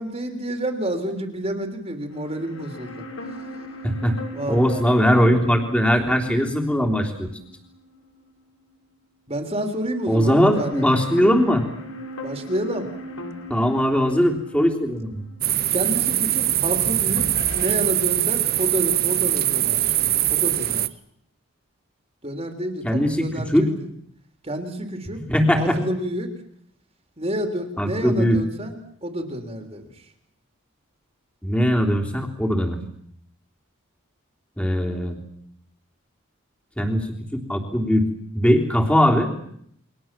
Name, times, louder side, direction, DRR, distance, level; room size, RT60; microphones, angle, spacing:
voice 1, 0.0-3.0 4.3-4.8 9.3-10.8 12.2-12.9 15.7-19.9 20.3-20.9 22.2-23.7 24.4-25.2 25.5-26.3 27.2-30.0, right 1 dB, 30° right, 5 dB, 3.2 m, -29 dB
sound 1, 2.1-8.4 8.7-8.8 9.8-16.8 17.2-17.7, equal, 85° left, 6.0 m, -39 dB
voice 2, 3.8-4.2 4.5-7.3 10.1-11.6 13.5-15.2 22.8-23.7 25.3-25.8 27.8-28.4 31.4-32.8 34.6-35.2 36.8-37.1 37.3-38.0 38.3-39.3, equal, 5° left, 2 dB, 3.5 m, -20 dB
sound 2, 15.4-20.9, right 13 dB, 45° right, 1.1 m, -22 dB
29.5 x 24.0 x 7.5 m, 0.69 s
head